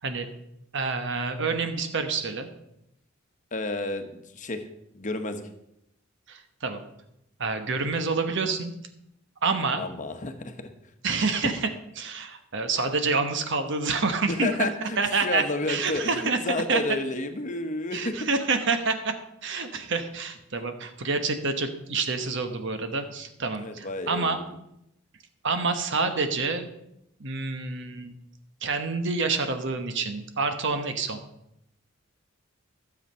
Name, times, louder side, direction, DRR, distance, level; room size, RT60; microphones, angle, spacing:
voice 1, 0.7-2.5 6.3-6.8 7.4-8.7 9.4-9.8 11.0-11.7 12.0-16.4 16.7-16.8 17.9-19.1 19.4-24.4 25.4-26.7 27.2-28.1 28.6-31.2, right 4 dB, 60° right, 7 dB, 1.1 m, -28 dB
voice 2, 3.5-4.6 4.9-5.4 9.8-10.7 14.3-18.3 19.7-19.8 23.5-24.4, left 2 dB, 40° left, 7 dB, 1.1 m, -31 dB
12.0 x 7.4 x 5.5 m, 0.82 s
head